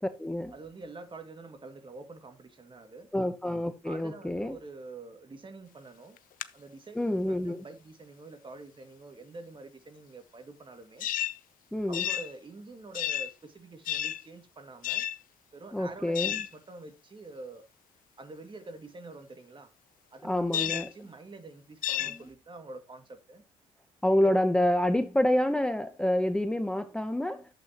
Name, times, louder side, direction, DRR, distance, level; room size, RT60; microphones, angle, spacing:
voice 1, 0.0-0.5 3.1-4.6 7.0-7.6 11.7-12.1 15.7-16.4 20.2-20.9 24.0-27.5, left 1 dB, 5° left, 0.8 m, -27 dB
voice 2, 0.5-3.1 3.8-6.2 6.5-11.1 11.9-15.0 15.5-17.6 18.2-19.7 20.1-23.4 24.2-24.4, right 3 dB, 30° right, 2.2 m, -46 dB
sound 1, 6.2-6.4 11.0-11.4 11.9-12.3 12.9-13.3 13.9-14.3 14.8-15.2 16.2-16.5 20.5-20.9 21.8-22.2, left 12 dB, 60° left, 0.7 m, -31 dB
12.0 x 7.6 x 2.9 m
hypercardioid pair, 55°, 16 cm